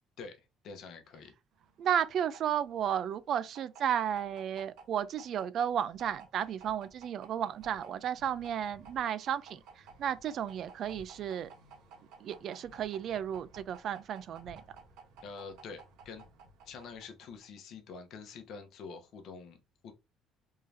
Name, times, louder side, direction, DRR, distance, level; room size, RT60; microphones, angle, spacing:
voice 1, 0.6-1.3 15.2-16.2 16.6-19.9, left 5 dB, 50° left, 0.9 m, -46 dB
sound 1, 1.6-17.6, right 4 dB, 80° right, 1.1 m, -55 dB
voice 2, 1.8-9.6 10.0-11.5 12.2-14.6, right 9 dB, 45° right, 0.3 m, -33 dB
3.6 x 2.7 x 3.3 m
cardioid pair, 170°, 0 cm